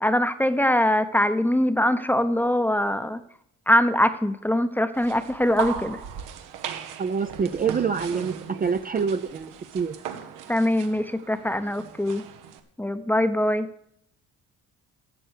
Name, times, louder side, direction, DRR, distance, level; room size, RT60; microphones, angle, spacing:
voice 1, 0.0-3.2 3.7-6.0 10.5-12.2 12.8-13.7, left 1 dB, 5° left, 11 dB, 0.8 m, -22 dB
sound 1, 4.9-12.6, right 8 dB, 85° right, 1.2 m, -37 dB
voice 2, 7.0-10.0, right 6 dB, 30° right, 9 dB, 0.6 m, -26 dB
12.0 x 7.6 x 6.5 m, 0.73 s
cardioid pair, 85°, 31 cm